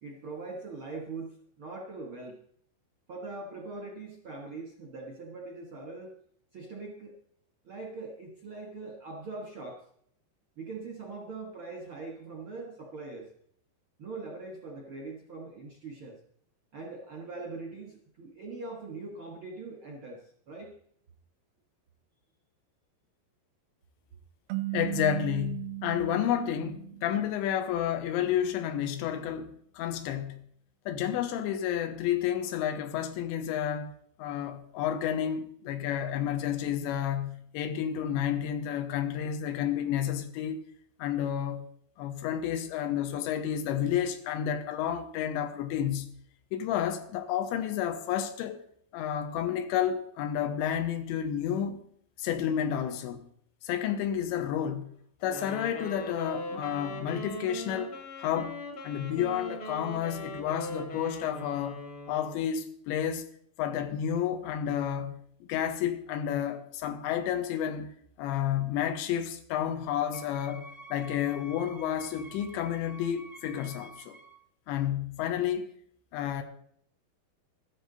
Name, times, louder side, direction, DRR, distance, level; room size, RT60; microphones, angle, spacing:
voice 1, 0.0-2.4 3.1-6.1 6.5-7.2 7.6-9.8 10.6-13.3 14.0-16.2 16.7-20.7, right 3 dB, 65° right, 1.3 m, -42 dB
sound 1, 24.5-27.7, right 22 dB, 80° right, 2.1 m, -37 dB
voice 2, 24.7-30.5 30.9-33.9 34.2-40.7 41.0-41.6 42.0-46.1 46.5-48.6 48.9-51.8 52.2-53.3 53.6-54.9 55.2-61.8 62.1-63.3 63.6-65.2 65.5-67.9 68.2-74.2 74.7-75.7 76.1-76.4, left 9 dB, 90° left, 3.1 m, -31 dB
Wind instrument woodwind instrument, 55.3-62.5, left 1 dB, 50° left, 1.7 m, -40 dB
Wind instrument woodwind instrument 2, 70.1-74.4, right 1 dB, ahead, 0.5 m, -49 dB
13.5 x 12.5 x 4.0 m
omnidirectional pair, 5.1 m